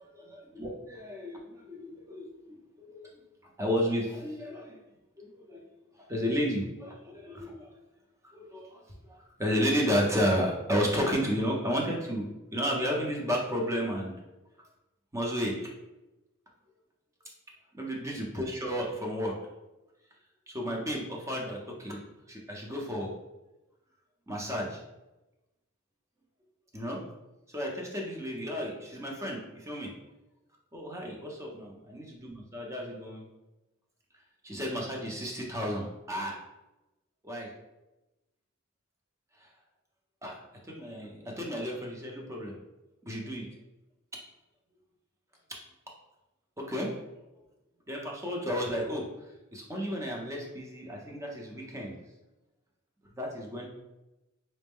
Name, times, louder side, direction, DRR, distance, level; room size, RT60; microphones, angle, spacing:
voice 1, 0.2-3.1 3.6-4.8 5.2-5.6 6.1-7.7 8.2-8.8 9.4-14.1 15.1-15.7 17.8-19.3 20.5-22.0 22.3-23.1 24.3-24.8 26.7-27.0 27.5-29.9 30.7-31.3 31.5-33.2 34.4-36.4 37.3-37.5 39.4-39.5 40.2-42.5 43.0-43.5 46.6-46.9 47.9-49.1 49.5-51.9 53.2-53.7, equal, 15° right, -1 dB, 0.7 m, -32 dB
4.1 x 2.1 x 3.5 m, 0.99 s
head